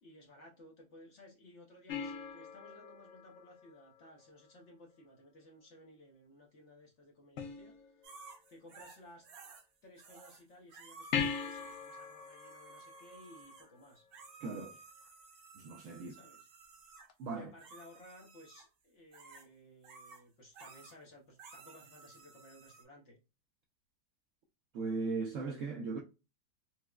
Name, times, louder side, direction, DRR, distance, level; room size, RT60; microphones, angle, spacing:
voice 1, 0.0-9.3 9.8-14.1 16.1-16.5 17.3-23.2, left 1 dB, 55° left, 0.9 m, -58 dB
sound 1, 1.9-4.5 7.4-8.3 11.1-14.0 17.1-17.2, left 6 dB, 85° left, 0.6 m, -41 dB
sound 2, 8.0-9.6 10.0-10.4 10.7-17.1 17.6-18.7 19.1-19.5 19.8-20.2 20.5-21.0 21.4-22.8, right 4 dB, 90° right, 1.5 m, -55 dB
voice 2, 14.4-14.8 15.5-16.2 17.2-17.5 24.7-26.0, right 4 dB, 70° right, 0.7 m, -38 dB
4.4 x 2.0 x 2.3 m
omnidirectional pair, 1.8 m